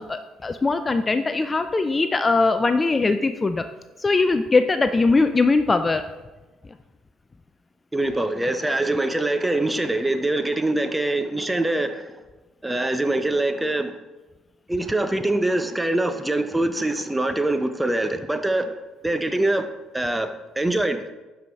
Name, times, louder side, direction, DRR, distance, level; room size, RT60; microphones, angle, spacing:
voice 1, 0.0-3.6 4.0-6.1, left 3 dB, 25° left, 10 dB, 0.4 m, -21 dB
voice 2, 7.9-12.2 12.6-14.0 14.7-18.8 19.0-19.7 19.9-21.1, right 2 dB, 10° right, 9 dB, 0.7 m, -24 dB
11.5 x 4.9 x 3.4 m, 1.1 s
figure-of-eight pair, 50°, 0 cm